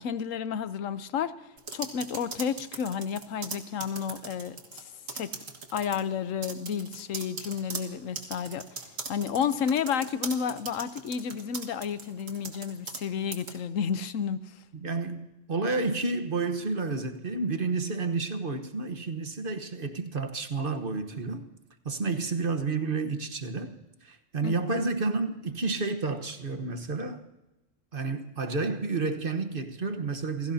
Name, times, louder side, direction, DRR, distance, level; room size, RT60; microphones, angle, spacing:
voice 1, 0.0-1.3 1.7-4.8 5.1-5.4 5.7-8.8 9.1-14.5 24.4-24.8, left 7 dB, 90° left, 1.2 m, -31 dB
sound 1, 1.6-4.8 5.1-6.0 6.4-13.0 13.3-13.6, right 4 dB, 85° right, 2.1 m, -39 dB
voice 2, 14.7-21.5 21.8-23.7 24.0-27.2 27.9-30.5, right 3 dB, 45° right, 1.3 m, -30 dB
29.0 x 17.0 x 2.8 m
omnidirectional pair, 1.3 m